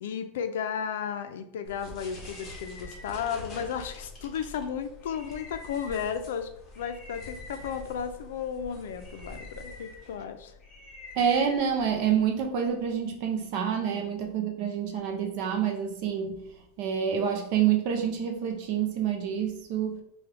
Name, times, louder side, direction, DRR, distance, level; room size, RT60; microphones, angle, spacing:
voice 1, 0.0-6.5 6.8-10.5 13.9-14.2, left 7 dB, 75° left, 8 dB, 0.5 m, -34 dB
sound 1, 1.6-12.3, left 2 dB, 20° left, 0.9 m, -45 dB
voice 2, 11.2-16.4 16.8-20.0, right 8 dB, 45° right, 4 dB, 0.5 m, -27 dB
4.5 x 2.3 x 3.3 m, 0.73 s
supercardioid pair, 170°, 0 cm